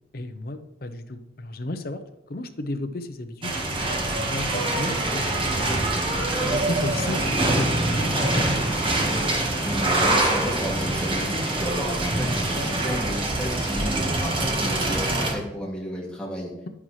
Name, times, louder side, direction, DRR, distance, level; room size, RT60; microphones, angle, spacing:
voice 1, 0.1-2.0 2.3-5.8 6.2-8.8, left 2 dB, 55° left, 8 dB, 0.8 m, -34 dB
sound 1, 3.4-15.3, right 2 dB, 30° right, 1.4 m, -24 dB
voice 2, 9.6-16.5, equal, 5° left, -4 dB, 2.4 m, -32 dB
11.0 x 9.6 x 3.2 m, 0.89 s
head